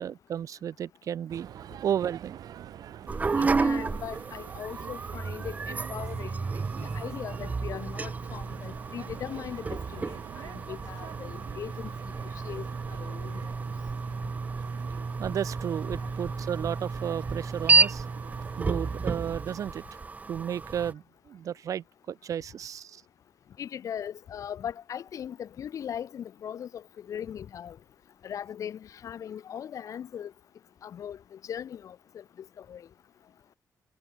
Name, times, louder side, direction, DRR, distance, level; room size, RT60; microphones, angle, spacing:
voice 1, 0.0-1.5 1.8-2.4 15.2-18.0 18.6-19.8 20.3-23.0, right 9 dB, 60° right, 1.7 m, -33 dB
sound 1, 1.3-19.4, right 11 dB, 80° right, 5.1 m, -45 dB
sound 2, 3.1-20.9, right 4 dB, 25° right, 2.4 m, -31 dB
voice 2, 3.4-6.4 6.8-11.9 12.4-12.7 13.0-13.4 23.6-27.8 28.2-30.3 30.8-32.2 32.6-32.8, left 9 dB, 55° left, 1.5 m, -39 dB
wide cardioid pair, 165°, 6 cm